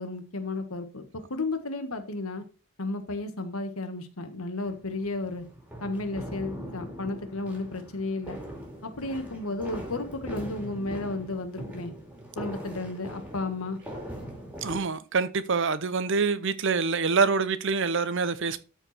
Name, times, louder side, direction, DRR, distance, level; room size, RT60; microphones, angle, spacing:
voice 1, 0.0-2.4 2.8-5.4 5.8-8.4 8.8-11.9 12.4-13.8, left 2 dB, 80° left, 1.6 m, -33 dB
sound 1, 4.6-14.8, equal, 5° right, 2.4 m, -41 dB
voice 2, 14.6-18.6, right 4 dB, 55° right, 0.7 m, -26 dB
13.0 x 4.6 x 4.3 m
head